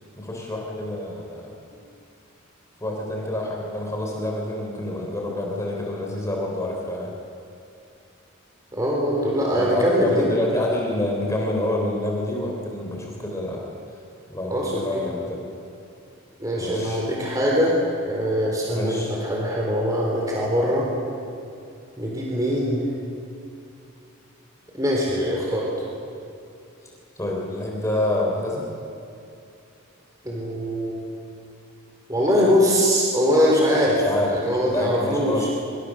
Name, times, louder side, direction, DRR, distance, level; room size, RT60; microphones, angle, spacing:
voice 1, 0.2-1.6 2.8-7.1 9.5-13.7 14.3-15.4 16.6-17.1 18.7-19.2 27.2-28.7 34.0-35.5, left 1 dB, 15° left, -1 dB, 3.5 m, -27 dB
voice 2, 8.7-10.3 14.5-15.0 16.4-17.8 18.0-20.9 22.0-22.8 24.7-25.9 30.2-31.0 32.1-35.5, equal, 15° right, -3 dB, 4.0 m, -22 dB
25.5 x 25.0 x 6.6 m, 2.6 s
head